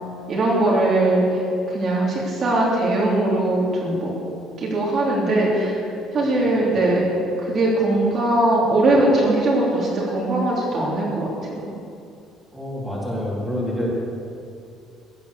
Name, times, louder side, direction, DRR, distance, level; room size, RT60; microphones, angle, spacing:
voice 1, 0.3-1.4 1.7-4.1 4.6-5.8 6.1-11.7, right 2 dB, 35° right, -5 dB, 3.1 m, -20 dB
voice 2, 12.5-13.9, left 1 dB, ahead, -7 dB, 3.7 m, -27 dB
16.0 x 10.0 x 6.9 m, 2.5 s
cardioid pair, 150°, 0 cm